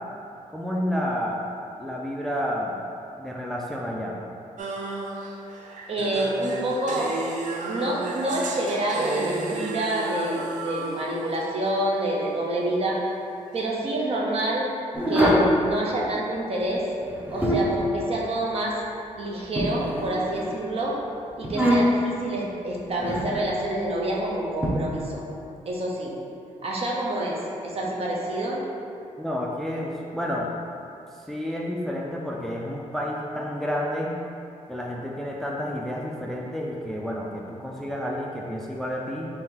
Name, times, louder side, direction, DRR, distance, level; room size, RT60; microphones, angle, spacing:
voice 1, 0.5-1.4 1.8-2.7 3.2-4.2 29.2-30.5 31.3-34.1 34.7-39.3, equal, ahead, -2 dB, 0.3 m, -30 dB
sound 1, 4.6-11.8, right 3 dB, 80° right, 0.4 m, -33 dB
voice 2, 5.9-7.1 7.7-13.0 13.5-14.7 15.1-16.8 17.3-18.7 19.2-21.0 21.4-25.2 25.7-26.1 26.6-28.6, right 1 dB, 50° right, -3 dB, 0.7 m, -27 dB
sound 2, 14.9-15.5 17.0-17.8 19.6-20.5 21.4-22.1 23.0-23.4 24.6-24.7, equal, 15° right, 0.7 m, -23 dB
4.2 x 2.7 x 3.8 m, 2.6 s
wide cardioid pair, 125°, 13 cm